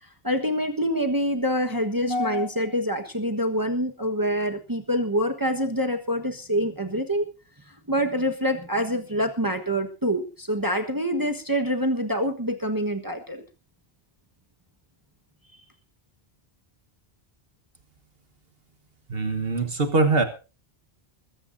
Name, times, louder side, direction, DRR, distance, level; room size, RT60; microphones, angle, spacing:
voice 1, 0.0-7.3 7.6-13.4, equal, 20° right, 5 dB, 1.4 m, -26 dB
voice 2, 19.1-20.2, right 3 dB, 65° right, 7 dB, 1.7 m, -22 dB
21.5 x 15.0 x 2.7 m, 0.33 s
omnidirectional pair, 1.0 m